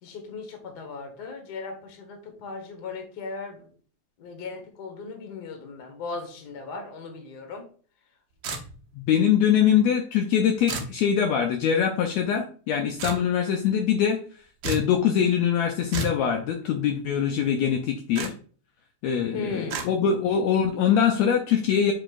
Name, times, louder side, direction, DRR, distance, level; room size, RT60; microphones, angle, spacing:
voice 1, 0.0-3.6 4.2-7.6 19.3-19.9, left 4 dB, 45° left, 4 dB, 1.4 m, -37 dB
sound 1, 8.4-9.0 10.7-11.0 13.0-13.2 14.6-14.9 15.9-16.2 18.1-18.3 19.7-19.9, right 4 dB, 90° right, 1.0 m, -31 dB
voice 2, 9.0-14.2 14.6-18.3 19.0-21.9, left 8 dB, 75° left, 3 dB, 1.7 m, -23 dB
7.5 x 5.1 x 2.5 m, 0.42 s
omnidirectional pair, 3.5 m